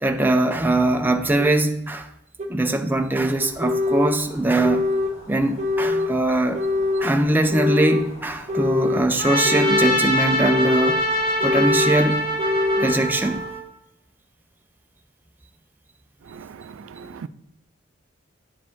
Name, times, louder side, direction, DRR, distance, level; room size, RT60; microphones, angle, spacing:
voice 1, 0.0-2.1 2.5-4.9 5.3-6.6 7.0-11.0 11.4-12.2 12.8-13.4, right 2 dB, 10° right, 0.4 m, -21 dB
sound 1, 1.4-1.5 2.4-2.5 3.4-4.2 4.6-5.1 5.6-6.1 6.5-7.1 7.5-8.1 8.5-9.0 9.4-10.0 10.4-11.0 11.4-12.0 12.4-12.9, left 3 dB, 35° right, 0.8 m, -23 dB
sound 2, 3.4-13.5, equal, 75° left, 2.4 m, -44 dB
Trumpet, 9.2-13.6, equal, 45° left, 2.1 m, -23 dB
voice 2, 16.3-17.3, right 6 dB, 85° right, 0.4 m, -39 dB
10.5 x 4.9 x 3.6 m
head